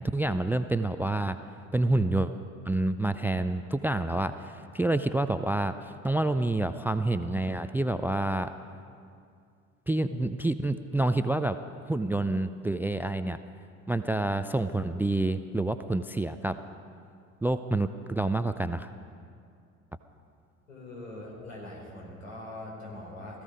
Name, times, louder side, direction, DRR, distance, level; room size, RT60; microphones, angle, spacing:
voice 1, 0.0-1.4 1.7-2.3 2.7-8.5 9.9-11.6 11.9-13.4 13.9-16.6 17.4-18.9, right 2 dB, 5° right, 12 dB, 0.4 m, -28 dB
voice 2, 20.7-23.4, left 1 dB, 80° left, -2 dB, 3.9 m, -42 dB
17.5 x 14.5 x 5.1 m, 2.3 s
figure-of-eight pair, 60°, 39 cm